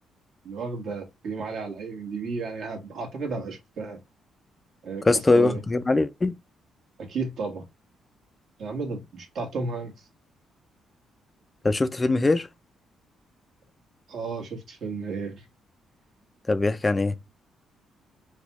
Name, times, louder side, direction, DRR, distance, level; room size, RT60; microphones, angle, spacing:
voice 1, 0.4-4.0 4.8-5.6 7.0-7.6 8.6-10.1 14.1-15.4, right 4 dB, 65° right, 1.4 m, -33 dB
voice 2, 5.0-6.3 11.6-12.5 16.5-17.1, left 2 dB, 20° left, 0.4 m, -22 dB
4.1 x 2.3 x 2.9 m
cardioid pair, 90°, 0 cm